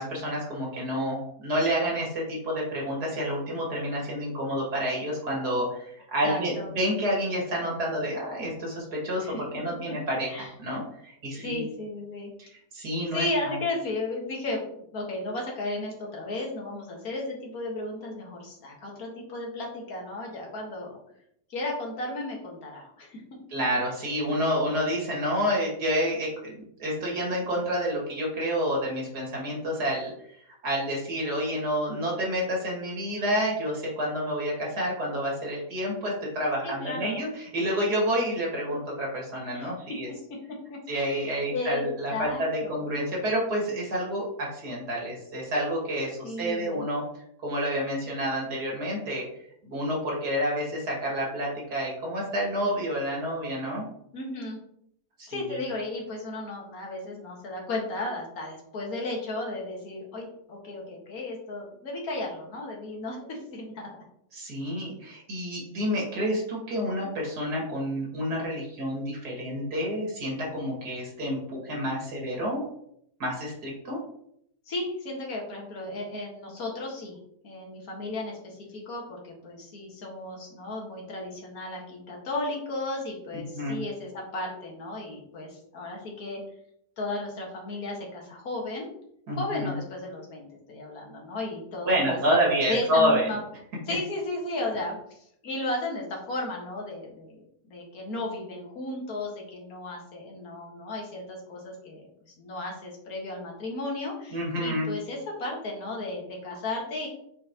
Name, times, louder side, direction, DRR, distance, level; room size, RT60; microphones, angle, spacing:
voice 1, 0.0-10.3 10.6-11.6 12.7-13.6 23.5-40.1 40.9-47.0 47.4-49.3 49.6-53.8 55.2-55.6 64.3-72.6 73.2-74.0 83.5-83.8 89.3-89.8 91.9-93.3 104.3-104.9, equal, 90° right, -3 dB, 2.7 m, -29 dB
voice 2, 6.2-6.8 9.2-9.4 10.3-10.5 11.3-12.3 13.1-21.0 21.5-23.4 36.6-37.2 39.5-39.7 40.7-42.8 46.2-46.8 54.1-54.6 55.3-63.9 74.7-77.2 77.4-86.4 87.0-88.9 89.3-92.4 92.7-93.4 93.9-97.4 97.6-102.1 102.4-107.1, left 2 dB, 65° left, -1 dB, 1.9 m, -34 dB
7.6 x 4.3 x 2.9 m, 0.72 s
omnidirectional pair, 1.7 m